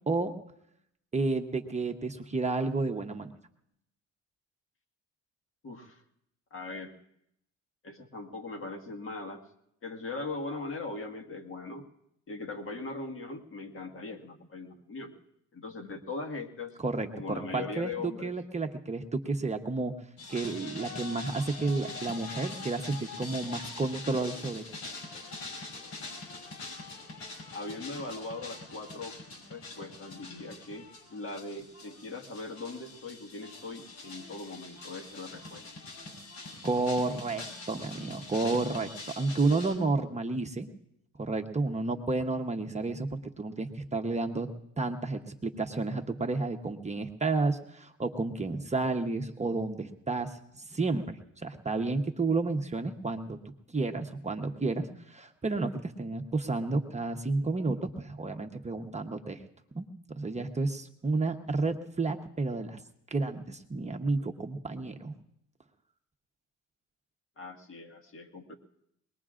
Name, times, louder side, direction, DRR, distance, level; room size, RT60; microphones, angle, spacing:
voice 1, 1.1-3.3 16.8-19.9 20.3-24.6 36.6-40.7 41.2-44.5 44.8-51.0 51.4-53.4 53.7-59.4 59.7-59.8 60.1-62.8 63.1-65.1, right 3 dB, 20° right, 5 dB, 0.9 m, -31 dB
voice 2, 5.6-6.0 6.5-6.9 7.8-9.4 9.8-11.9 12.3-15.1 15.5-16.8 17.1-18.3 27.5-29.2 29.5-35.6 67.4-68.5, left 3 dB, 45° left, 5 dB, 1.7 m, -40 dB
sound 1, 20.2-39.7, left 3 dB, 75° left, 5.0 m, -44 dB
23.0 x 20.0 x 2.5 m, 0.79 s
cardioid pair, 90°, 30 cm